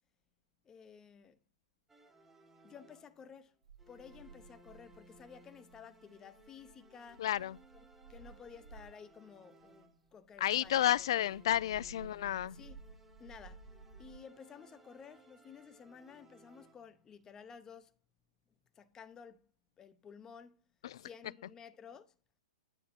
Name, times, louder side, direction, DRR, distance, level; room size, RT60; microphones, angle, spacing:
voice 1, 0.6-1.4 2.6-3.6 3.9-7.3 7.7-11.1 12.5-12.8 13.2-13.7 14.0-17.9 18.7-19.5 19.8-20.6 21.0-22.1, left 7 dB, 15° left, 0.7 m, -54 dB
sound 1, 1.9-3.4 3.8-10.2 10.6-17.1, equal, 10° right, 1.0 m, -62 dB
sound 2, 3.6-9.1 9.6-14.2, right 4 dB, 80° right, 1.6 m, -56 dB
voice 2, 7.2-7.6 10.4-12.6 20.8-21.0, left 12 dB, 50° left, 0.3 m, -31 dB
9.9 x 4.7 x 4.2 m
figure-of-eight pair, 110°, 3 cm